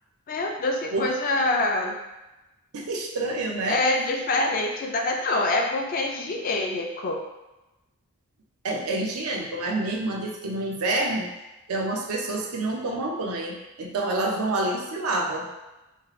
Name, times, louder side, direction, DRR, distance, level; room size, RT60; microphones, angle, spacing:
voice 1, 0.3-2.0 3.7-7.2, left 2 dB, 40° left, 2 dB, 0.3 m, -25 dB
voice 2, 2.7-3.8 8.6-11.3 11.7-15.5, right 2 dB, 75° right, 0 dB, 0.5 m, -28 dB
2.6 x 2.4 x 3.0 m, 1.0 s
head